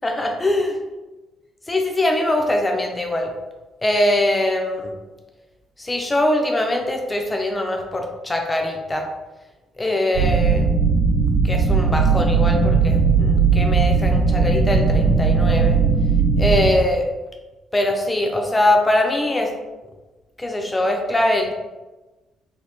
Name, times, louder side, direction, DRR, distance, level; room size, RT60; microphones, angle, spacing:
voice 1, 0.0-0.8 1.7-3.3 3.8-4.9 5.8-9.1 9.8-10.7 11.4-15.8 16.4-17.1 17.7-19.5 20.4-21.5, left 1 dB, 20° left, 2 dB, 0.6 m, -22 dB
sound 1, 10.1-16.7, right 5 dB, 70° right, 1.0 m, -18 dB
3.8 x 3.5 x 2.4 m, 1.1 s
figure-of-eight pair, 45°, 0 cm